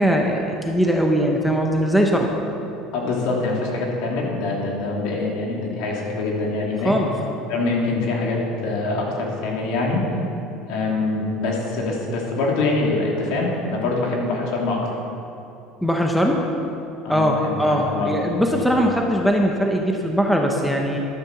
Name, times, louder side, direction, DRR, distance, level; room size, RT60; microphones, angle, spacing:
voice 1, 0.0-2.3 6.8-7.1 15.8-16.4 17.1-21.0, equal, ahead, 1 dB, 0.8 m, -20 dB
voice 2, 2.9-6.9 7.5-10.1 10.7-14.9 17.0-18.8, left 3 dB, 60° left, -1 dB, 3.0 m, -24 dB
12.5 x 11.0 x 6.9 m, 2.8 s
cardioid pair, 175°, 0 cm